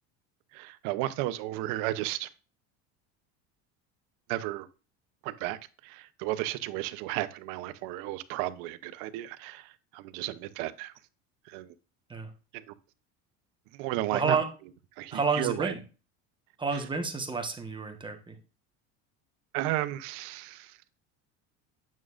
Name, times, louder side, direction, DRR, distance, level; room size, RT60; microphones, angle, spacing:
voice 1, 0.5-2.3 4.3-4.7 5.2-5.6 5.8-10.9 11.5-11.7 12.5-12.7 13.7-14.4 15.0-15.7 19.5-20.7, right 15 dB, 70° right, 0.8 m, -33 dB
voice 2, 14.1-14.5 15.1-15.8 16.6-18.3, right 4 dB, 15° right, 1.2 m, -30 dB
9.2 x 6.3 x 2.5 m
supercardioid pair, 125°, 35 cm